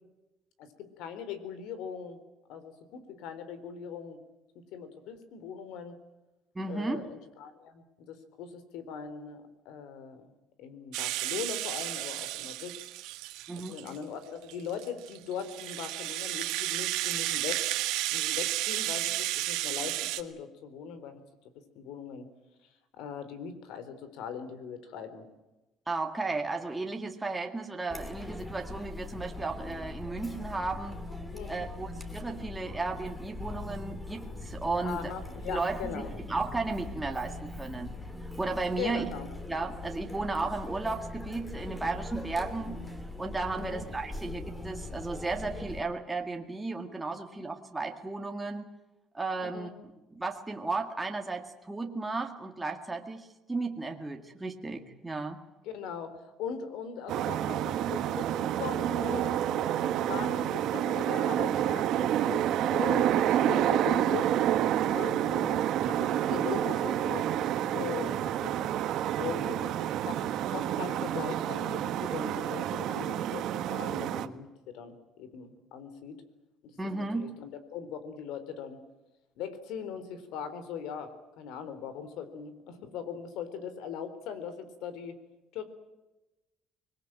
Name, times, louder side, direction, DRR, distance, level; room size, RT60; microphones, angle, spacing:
voice 1, 0.6-2.2 2.5-4.2 4.7-6.0 6.7-10.3 10.6-12.7 13.7-17.7 18.1-21.2 21.8-22.3 23.0-25.2 31.3-31.7 34.8-36.1 38.8-39.3 43.5-43.8 49.4-49.7 55.6-56.1 56.4-64.3 64.9-67.3 67.7-68.6 69.2-70.2 70.5-76.2 76.6-78.8 79.4-81.1 81.4-85.1 85.5-85.6, left 7 dB, 80° left, 12 dB, 3.9 m, -40 dB
voice 2, 6.6-7.0 13.5-13.8 25.9-31.0 31.5-35.1 35.5-37.9 38.2-39.1 39.5-42.8 43.2-48.7 49.1-49.7 50.1-55.4 76.8-77.3, right 3 dB, 10° right, 2 dB, 2.0 m, -34 dB
Rattle (instrument), 10.9-14.0 14.5-20.2, right 17 dB, 85° right, 1.7 m, -32 dB
Chatter, 27.9-45.8, left 2 dB, 10° left, 2.9 m, -41 dB
sound 1, 57.1-74.3, right 11 dB, 60° right, 1.4 m, -29 dB
25.0 x 21.0 x 8.9 m, 1.0 s
cardioid pair, 130°, 0 cm